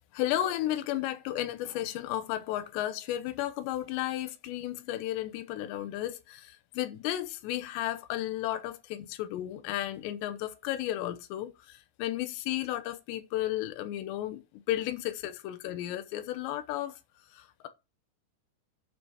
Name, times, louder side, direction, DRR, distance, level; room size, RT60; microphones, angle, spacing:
voice 1, 0.1-17.0 17.3-17.7, left 13 dB, 90° left, 3.1 m, -33 dB
9.0 x 4.9 x 5.6 m
omnidirectional pair, 4.9 m